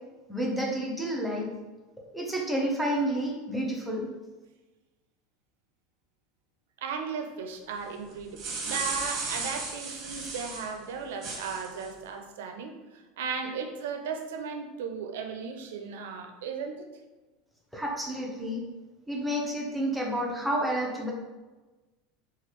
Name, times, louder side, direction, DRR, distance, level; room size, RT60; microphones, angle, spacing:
voice 1, 0.3-1.5 2.1-4.1 17.7-18.6 19.1-21.1, right 1 dB, 5° right, -2 dB, 0.6 m, -30 dB
voice 2, 6.8-16.9, right 6 dB, 85° right, 5 dB, 0.4 m, -36 dB
sound 1, 8.1-10.7 11.2-11.9, right 3 dB, 45° right, 0.9 m, -35 dB
3.1 x 2.3 x 2.9 m, 1.2 s
supercardioid pair, 130°, 0 cm